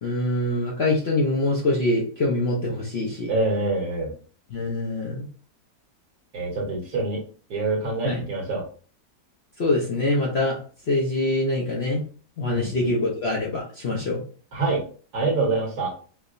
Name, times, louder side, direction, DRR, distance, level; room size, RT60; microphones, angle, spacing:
voice 1, 0.0-3.3 4.5-5.2 8.0-8.2 9.6-10.6 10.9-12.0 12.4-14.2, left 2 dB, 50° left, -4 dB, 0.8 m, -24 dB
voice 2, 3.3-4.1 6.3-7.2 7.5-8.6 12.5-12.9 14.5-14.8 15.1-15.9, right 3 dB, 65° right, -2 dB, 1.6 m, -25 dB
4.6 x 2.1 x 2.5 m, 0.41 s
omnidirectional pair, 1.8 m